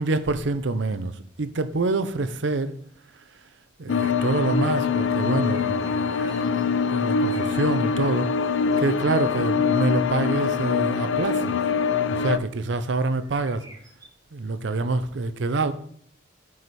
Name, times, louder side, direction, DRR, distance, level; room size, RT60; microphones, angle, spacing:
voice 1, 0.0-2.8 3.8-8.4 8.8-11.6 12.1-13.7 14.3-15.7, right 3 dB, 65° right, 0.6 m, -26 dB
sound 1, 3.9-12.4, left 6 dB, 70° left, 0.4 m, -24 dB
sound 2, 5.5-6.6 7.0-8.0 8.4-8.9 13.2-14.1, right 2 dB, 15° right, 1.4 m, -50 dB
9.0 x 4.9 x 4.2 m
head